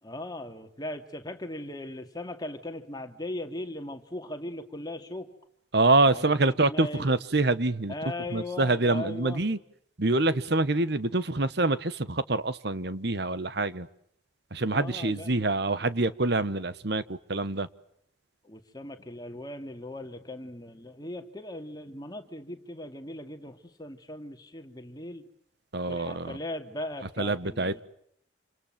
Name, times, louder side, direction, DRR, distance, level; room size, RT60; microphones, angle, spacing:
voice 1, 0.0-5.3 6.1-7.1 7.9-9.4 14.6-15.4 18.4-25.3 25.9-27.8, left 1 dB, 20° left, 2.5 m, -39 dB
voice 2, 5.7-7.9 8.3-9.6 10.0-13.9 14.5-17.7 25.7-26.4 27.2-27.8, right 2 dB, 55° right, 1.3 m, -26 dB
28.5 x 27.0 x 7.5 m
head